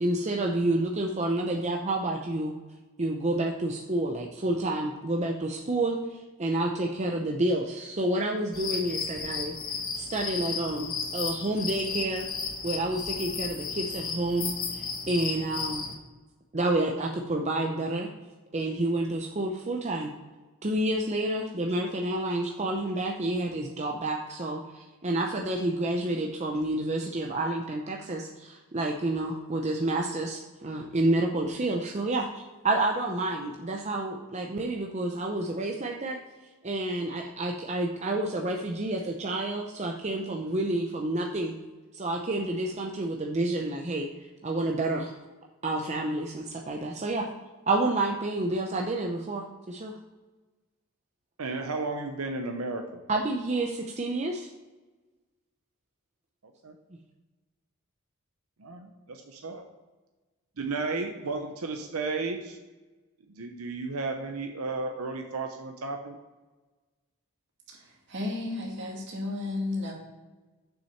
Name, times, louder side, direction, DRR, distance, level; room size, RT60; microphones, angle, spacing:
voice 1, 0.0-2.5 3.0-9.5 9.9-12.3 12.6-15.9 16.5-18.1 18.5-20.1 20.6-36.2 36.6-41.6 41.9-44.1 44.4-45.1 45.6-47.3 47.7-49.9 53.1-54.5, right 2 dB, 30° right, 1 dB, 0.7 m, -29 dB
sound 1, 8.5-15.9, left 5 dB, 40° left, 1.2 m, -34 dB
voice 2, 51.4-53.0 56.6-56.7 58.6-59.6 60.6-62.6 63.3-66.2, right 3 dB, 85° right, 4 dB, 0.8 m, -33 dB
voice 3, 68.1-69.9, left 2 dB, 55° right, -1 dB, 2.2 m, -33 dB
7.3 x 6.1 x 5.7 m, 1.2 s
head